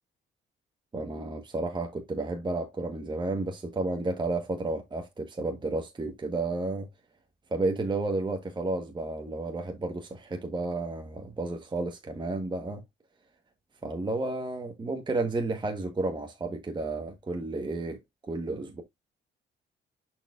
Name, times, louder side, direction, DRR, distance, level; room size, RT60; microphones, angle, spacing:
voice 1, 0.9-6.9 7.5-12.8 13.8-18.8, right 2 dB, 25° right, 1.1 m, -32 dB
10.0 x 4.5 x 2.4 m
cardioid pair, 90°, 20 cm